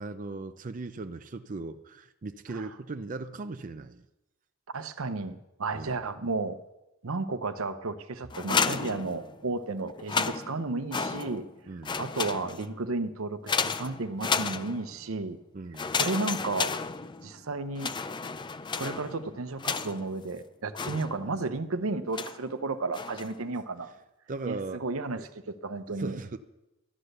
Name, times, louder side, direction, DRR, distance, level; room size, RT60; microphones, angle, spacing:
voice 1, 0.0-4.1 5.7-6.0 11.7-12.0 15.5-15.9 24.3-24.8 25.2-25.3 26.0-26.4, right 3 dB, 40° right, 8 dB, 0.5 m, -38 dB
voice 2, 4.7-6.6 7.0-11.5 12.0-15.4 15.9-16.8 17.2-17.9 18.8-23.9 24.4-26.2, right 3 dB, 80° right, 11 dB, 0.8 m, -33 dB
sound 1, 8.3-9.5 9.9-11.5 11.8-12.8 13.5-15.0 15.7-17.4 17.8-20.2 20.7-21.5 22.1-22.5 22.9-23.4, left 5 dB, 20° left, 0.4 m, -32 dB
12.5 x 9.9 x 6.6 m, 0.95 s
head